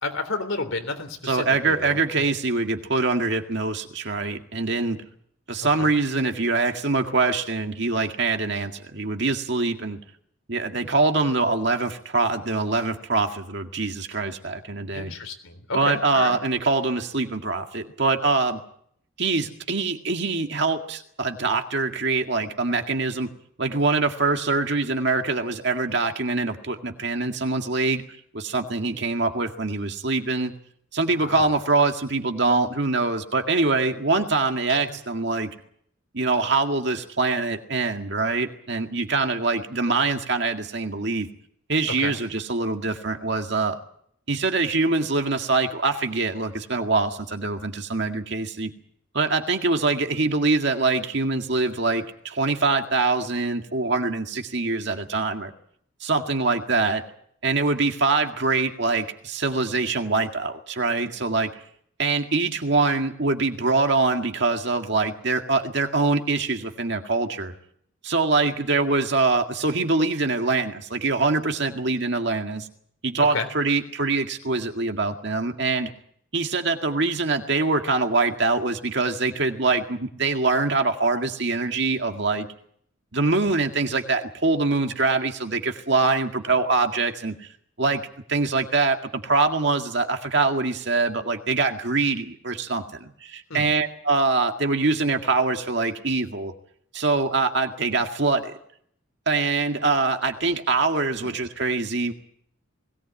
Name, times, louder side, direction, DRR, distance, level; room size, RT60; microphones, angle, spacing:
voice 1, 0.0-2.0 5.8-5.9 14.9-16.4 31.2-31.5 34.7-35.0 42.0-42.1 73.3-73.5 93.5-93.7 101.2-101.3, left 3 dB, 75° left, 7 dB, 3.5 m, -31 dB
voice 2, 1.2-5.0 5.5-10.0 10.5-15.1 15.7-18.6 19.2-23.3 23.6-28.0 28.3-30.5 30.9-35.5 36.1-41.3 41.7-43.8 44.3-48.7 49.1-55.5 56.0-57.0 57.4-61.5 62.0-67.5 68.0-72.7 73.0-75.9 76.3-82.5 83.1-87.5 87.8-88.0 88.3-96.5 96.9-98.6 99.3-102.1, right 3 dB, 55° right, 5 dB, 2.0 m, -24 dB
21.0 x 18.0 x 8.9 m, 0.68 s
head